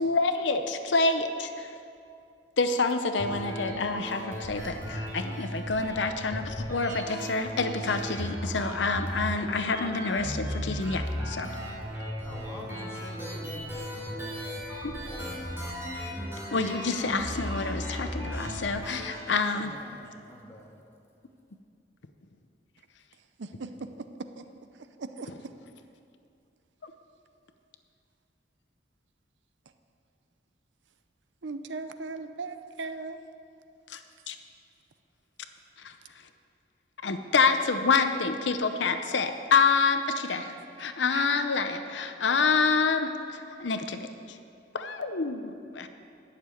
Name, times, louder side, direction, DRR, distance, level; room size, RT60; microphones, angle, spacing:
voice 1, 0.0-1.7 2.6-11.5 14.8-14.9 16.5-19.7 26.8-26.9 33.9-34.0 34.3-34.4 35.8-35.9 37.0-44.0 44.7-45.9, left 4 dB, 70° left, 8 dB, 0.7 m, -27 dB
sound 1, 3.2-19.2, equal, 15° right, 3.7 m, -36 dB
voice 2, 12.2-13.9 19.5-20.7, equal, 15° left, -2 dB, 1.9 m, -45 dB
voice 3, 23.4-23.9 25.2-25.3 31.4-33.2 41.1-41.3, right 3 dB, 75° right, 10 dB, 0.6 m, -37 dB
11.0 x 6.8 x 9.1 m, 2.5 s
head